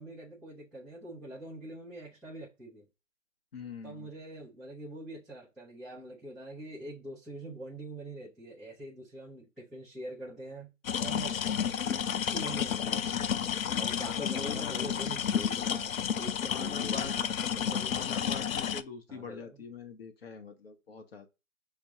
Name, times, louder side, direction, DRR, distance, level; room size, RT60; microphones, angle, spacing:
voice 1, 0.0-2.9 3.8-10.7 11.0-11.4 12.1-13.2 13.8-18.1 19.1-19.6, right 2 dB, ahead, 0.3 m, -44 dB
voice 2, 3.5-4.1 13.6-14.9 16.5-17.2 17.9-21.3, left 5 dB, 50° left, 0.8 m, -43 dB
sound 1, 10.8-18.8, left 8 dB, 80° left, 0.5 m, -31 dB
6.2 x 2.2 x 2.7 m
hypercardioid pair, 155°, 40 cm